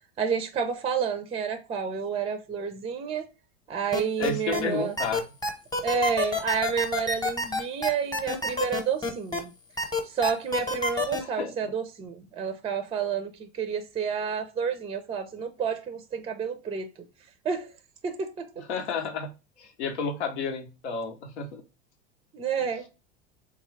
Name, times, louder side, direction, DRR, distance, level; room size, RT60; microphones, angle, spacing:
voice 1, 0.2-3.2 3.7-4.9 5.8-9.5 10.0-16.9 17.4-17.7 18.0-18.5 22.3-22.8, right 6 dB, 20° right, 0.4 m, -29 dB
sound 1, 3.9-4.6 5.0-9.4 9.8-11.2, left 2 dB, 10° left, 0.9 m, -28 dB
voice 2, 4.2-5.2 11.2-11.5 18.7-19.3 19.6-21.6 22.6-22.7, left 5 dB, 85° left, 0.9 m, -31 dB
3.6 x 2.3 x 3.1 m
hypercardioid pair, 100°, 33 cm